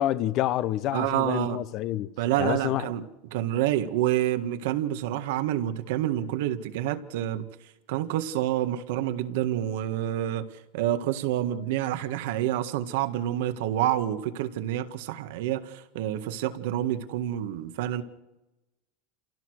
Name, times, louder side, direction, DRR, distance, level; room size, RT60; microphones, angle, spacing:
voice 1, 0.0-2.1 2.4-2.9, left 13 dB, 45° left, 0.9 m, -28 dB
voice 2, 0.9-1.6 2.2-3.0 3.3-7.5 7.9-10.5 10.7-18.0, right 12 dB, 75° right, 1.8 m, -28 dB
28.5 x 17.0 x 6.5 m
supercardioid pair, 145°, 0 cm